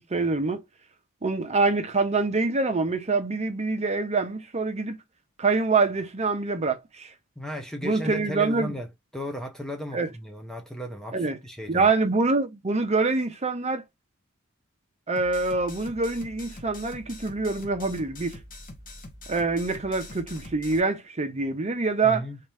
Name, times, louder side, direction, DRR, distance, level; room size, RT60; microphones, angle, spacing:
voice 1, 0.1-0.6 1.2-5.0 5.4-7.1 7.8-8.7 9.9-10.1 11.1-11.4 11.7-13.8 15.1-18.4 19.3-22.2, right 3 dB, 30° right, 0.8 m, -25 dB
voice 2, 7.4-8.9 9.1-11.9 22.0-22.4, equal, ahead, 0.5 m, -35 dB
sound 1, 15.2-20.8, left 1 dB, 40° left, 0.9 m, -44 dB
3.6 x 2.9 x 3.4 m
head